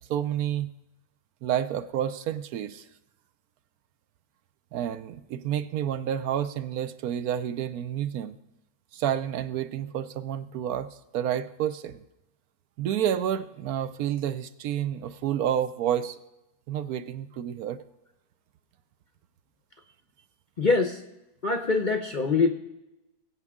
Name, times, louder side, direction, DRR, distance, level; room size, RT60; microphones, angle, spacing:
voice 1, 0.1-0.7 1.4-2.9 4.7-8.4 8.9-12.0 12.8-16.2 16.7-17.8, right 10 dB, 75° right, 12 dB, 1.0 m, -29 dB
voice 2, 20.6-21.0 21.4-22.5, left 4 dB, 40° left, 5 dB, 0.7 m, -23 dB
21.5 x 8.2 x 3.6 m, 0.94 s
omnidirectional pair, 1.7 m